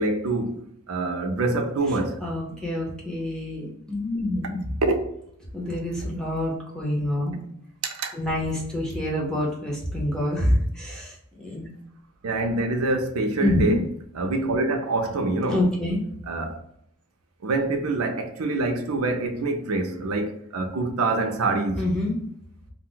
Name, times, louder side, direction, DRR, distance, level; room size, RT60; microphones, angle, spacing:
voice 1, 0.0-2.2 4.8-4.9 7.8-8.1 12.2-13.8 14.2-15.6 16.3-16.6 17.4-21.9, right 2 dB, 85° right, 0.5 m, -25 dB
voice 2, 2.2-4.8 5.5-7.4 8.1-11.7 13.4-13.7 15.5-16.0 21.8-22.1, left 1 dB, 5° left, 0.8 m, -26 dB
2.5 x 2.1 x 3.8 m
head